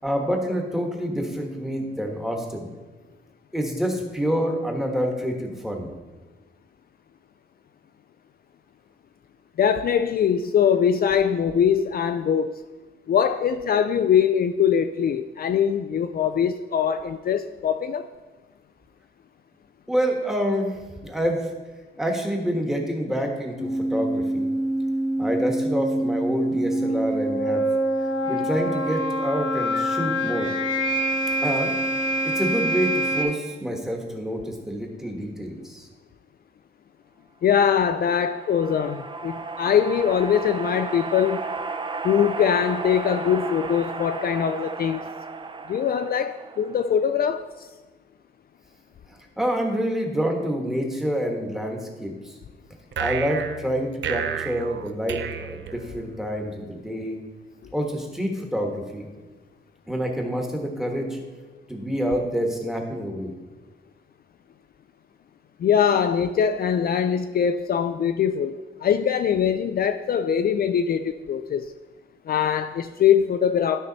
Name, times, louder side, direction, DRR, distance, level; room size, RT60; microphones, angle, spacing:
voice 1, 0.0-2.7 3.5-5.9 19.9-21.5 22.0-24.5 25.2-27.6 28.2-30.5 31.4-31.8 32.2-35.9 49.1-52.3 53.0-57.2 57.7-59.1 59.9-61.2 61.7-63.3, equal, ahead, 1.3 m, -27 dB
voice 2, 9.6-12.6 13.1-18.1 29.7-29.8 37.4-41.4 42.0-45.1 45.7-47.7 65.6-71.7 72.3-73.8, left 8 dB, 50° left, 0.4 m, -22 dB
sound 1, 23.6-33.2, right 1 dB, 90° left, 2.2 m, -25 dB
sound 2, 37.6-47.1, right 4 dB, 25° right, 0.5 m, -34 dB
sound 3, 52.9-56.3, right 8 dB, 70° right, 0.5 m, -32 dB
12.5 x 5.6 x 4.0 m
wide cardioid pair, 130°, 20 cm